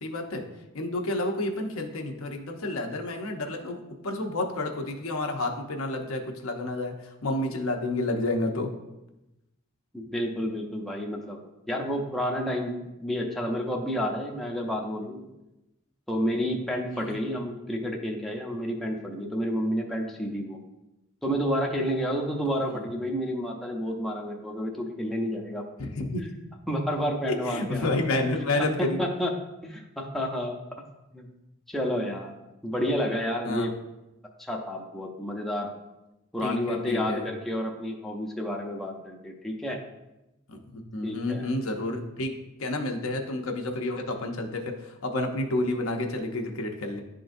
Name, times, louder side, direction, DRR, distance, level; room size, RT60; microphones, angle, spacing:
voice 1, 0.0-0.4 0.7-6.9 7.2-8.7 16.9-17.2 25.8-26.3 27.5-29.0 33.4-33.7 36.4-37.3 40.5-42.3 42.6-47.0, left 2 dB, 80° left, 3 dB, 0.8 m, -30 dB
voice 2, 9.9-11.4 11.7-15.3 16.1-20.6 21.2-25.7 26.7-28.2 28.6-30.6 31.1-31.3 31.7-32.3 32.6-33.7 34.4-35.7 36.3-39.8 41.0-41.5, equal, ahead, -1 dB, 0.6 m, -30 dB
10.5 x 3.8 x 2.6 m, 0.95 s
head